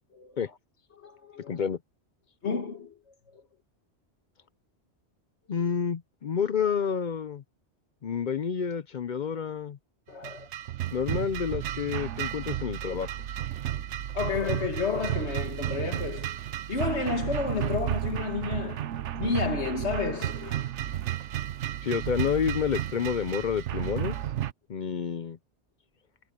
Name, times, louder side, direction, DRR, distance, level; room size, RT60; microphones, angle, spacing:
voice 1, 0.9-1.6 2.4-3.0 3.3-3.4 10.1-10.5 14.1-16.4 16.7-18.9 19.1-20.7, left 4 dB, 75° left, 2.0 m, -31 dB
voice 2, 1.5-1.8 5.5-7.4 8.0-9.8 10.9-13.1 17.7-17.8 21.8-24.2 24.7-25.4, left 7 dB, 50° left, 0.7 m, -29 dB
sound 1, 10.2-24.5, right 12 dB, 90° right, 1.0 m, -33 dB
omnidirectional pair, 1.2 m